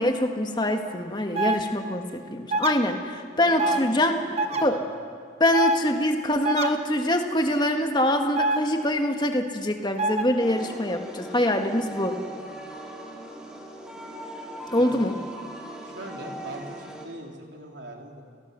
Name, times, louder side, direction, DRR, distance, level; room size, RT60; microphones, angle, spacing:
voice 1, 0.0-4.1 4.6-4.8 5.4-12.2 14.7-15.2, left 1 dB, 25° left, 5 dB, 1.6 m, -24 dB
sound 1, 1.3-1.6 2.5-2.7 3.6-3.8 4.4-4.6 5.5-5.8 6.4-6.7 8.4-8.6 10.0-10.2, right 2 dB, 35° right, 1.4 m, -24 dB
voice 2, 3.3-3.8 4.1-5.0 14.6-15.1 15.8-18.2, right 1 dB, 75° right, 1 dB, 3.6 m, -40 dB
sound 2, 10.4-17.1, right 1 dB, 5° right, 2.5 m, -39 dB
30.0 x 18.5 x 6.9 m, 2.1 s
head